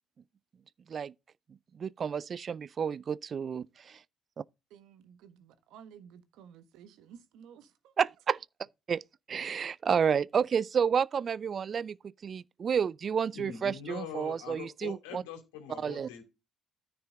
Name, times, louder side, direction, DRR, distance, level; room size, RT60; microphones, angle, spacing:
voice 1, 1.7-4.0 4.4-4.5 8.0-8.4 8.9-9.0 9.3-12.0 12.2-15.2 15.8-16.1, right 7 dB, 45° right, 0.4 m, -30 dB
voice 2, 4.7-7.9, right 8 dB, 75° right, 1.2 m, -54 dB
voice 3, 13.3-16.2, left 8 dB, 90° left, 2.6 m, -43 dB
9.8 x 5.8 x 3.8 m
supercardioid pair, 65°, 0 cm